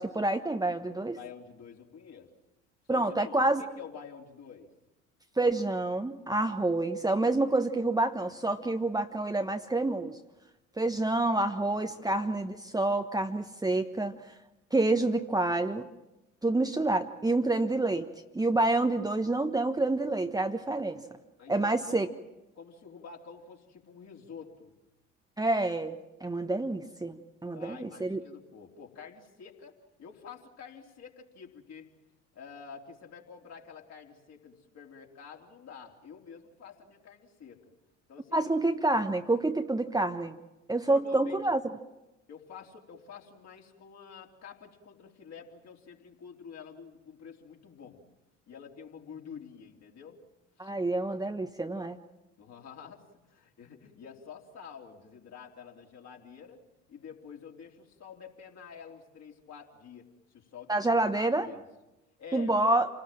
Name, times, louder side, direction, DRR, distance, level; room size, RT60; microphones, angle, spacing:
voice 1, 0.0-1.2 2.9-3.6 5.4-10.2 10.8-14.1 14.7-15.9 16.4-21.0 21.5-22.1 25.4-28.2 38.3-40.4 40.7-41.7 50.6-52.0 60.7-61.5 62.3-62.9, right 2 dB, 10° right, 6 dB, 1.2 m, -28 dB
voice 2, 1.1-2.3 2.9-4.7 11.6-12.4 21.4-22.1 22.5-24.7 27.5-31.9 32.3-37.6 38.1-38.5 40.8-41.5 42.3-48.0 48.5-50.2 50.6-50.7 52.4-56.6 56.9-61.7 62.2-62.8, left 6 dB, 45° left, 1 dB, 3.7 m, -48 dB
28.0 x 19.0 x 7.6 m, 1.0 s
figure-of-eight pair, 55°, 36 cm